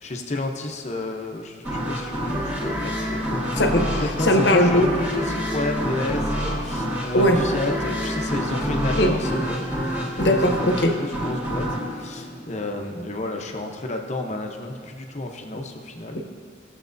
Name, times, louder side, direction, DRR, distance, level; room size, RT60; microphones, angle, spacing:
voice 1, 0.0-3.5 4.0-9.7 10.7-16.2, left 2 dB, 35° left, 3 dB, 0.8 m, -31 dB
sound 1, 1.6-13.1, equal, 10° right, 1.7 m, -27 dB
voice 2, 3.6-4.9 7.1-7.4 8.9-9.1 10.2-11.0 15.5-15.6 16.1-16.2, left 1 dB, 65° left, 4 dB, 0.9 m, -19 dB
16.5 x 7.3 x 2.6 m, 2.3 s
head